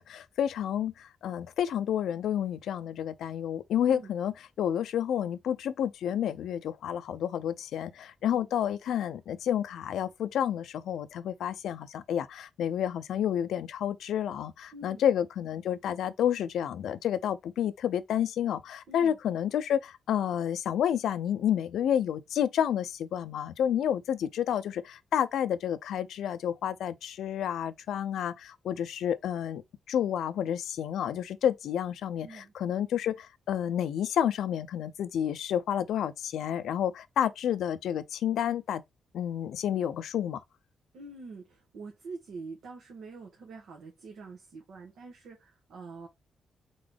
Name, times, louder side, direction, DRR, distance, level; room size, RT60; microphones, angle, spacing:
voice 1, 0.0-29.6 29.9-38.8 39.1-40.4, left 9 dB, 90° left, 0.4 m, -30 dB
voice 2, 14.7-15.0 18.9-19.2 32.2-32.5 40.9-46.1, right 3 dB, 85° right, 1.3 m, -45 dB
3.9 x 3.7 x 3.4 m
cardioid pair, 105°, 0 cm